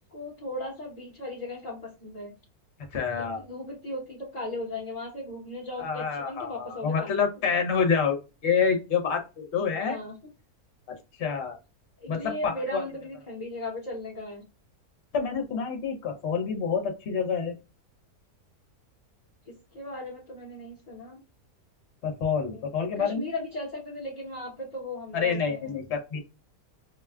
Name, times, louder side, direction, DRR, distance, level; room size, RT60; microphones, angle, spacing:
voice 1, 0.0-2.3 3.2-7.3 9.9-10.2 12.0-14.5 19.5-21.2 22.4-22.7 23.0-25.7, left 1 dB, 30° left, -4 dB, 1.0 m, -37 dB
voice 2, 2.9-3.4 5.8-8.2 8.4-10.0 11.2-11.6 12.1-12.8 15.1-17.6 22.0-23.3 25.1-26.2, left 6 dB, 50° left, 4 dB, 1.1 m, -27 dB
5.7 x 2.3 x 2.3 m, 0.29 s
omnidirectional pair, 1.5 m